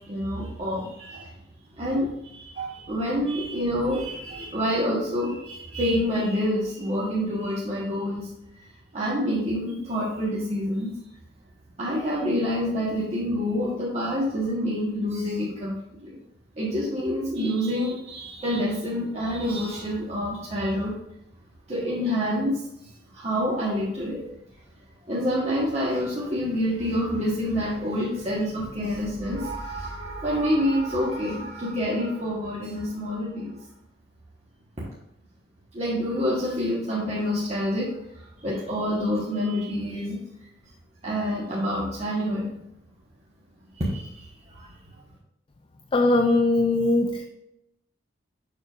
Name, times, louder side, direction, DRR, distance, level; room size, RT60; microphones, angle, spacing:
voice 1, 0.0-1.3 1.8-8.3 8.9-10.9 11.8-15.8 16.0-16.2 16.6-21.0 21.7-24.2 25.1-33.6 35.7-40.2 41.0-42.5 43.8-44.7, equal, 35° right, -7 dB, 1.4 m, -27 dB
voice 2, 45.9-47.3, left 2 dB, 30° left, 5 dB, 0.4 m, -20 dB
6.8 x 6.7 x 2.5 m, 0.85 s
head